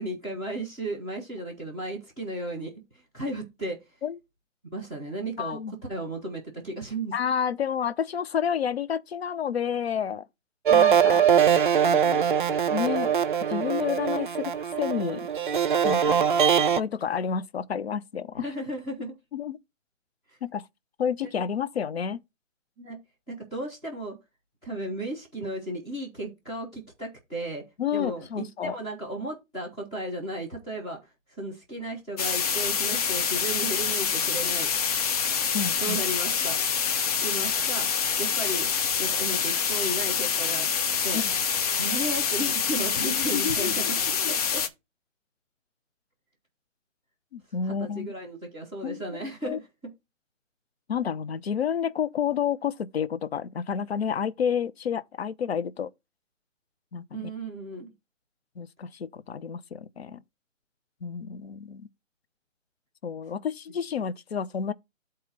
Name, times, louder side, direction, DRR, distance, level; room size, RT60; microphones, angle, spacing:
voice 1, 0.0-3.8 4.7-5.6 5.9-7.1 18.4-19.2 20.3-20.4 22.8-23.0 23.3-24.2 24.6-27.6 27.9-34.7 35.8-36.6 37.0-37.9 38.2-38.7 39.0-41.2 41.8-43.9 44.2-44.6 47.6-49.9 57.1-57.9, right 1 dB, 5° left, 0.6 m, -35 dB
voice 2, 5.4-5.7 7.1-10.3 10.7-11.3 11.9-12.3 12.7-13.1 13.5-15.3 15.8-16.2 16.8-18.5 19.3-19.6 20.4-20.7 21.0-22.2 27.8-28.8 35.5-36.0 41.1-41.3 43.0-44.4 47.3-48.1 48.8-49.0 49.5-49.6 50.9-55.9 56.9-57.3 58.6-60.2 61.0-61.9 63.0-64.7, left 7 dB, 50° left, 0.7 m, -30 dB
sound 1, 10.7-16.8, right 8 dB, 40° right, 0.6 m, -22 dB
sound 2, 32.2-44.7, left 7 dB, 30° left, 1.1 m, -26 dB
8.2 x 3.1 x 6.0 m
hypercardioid pair, 155°, 39 cm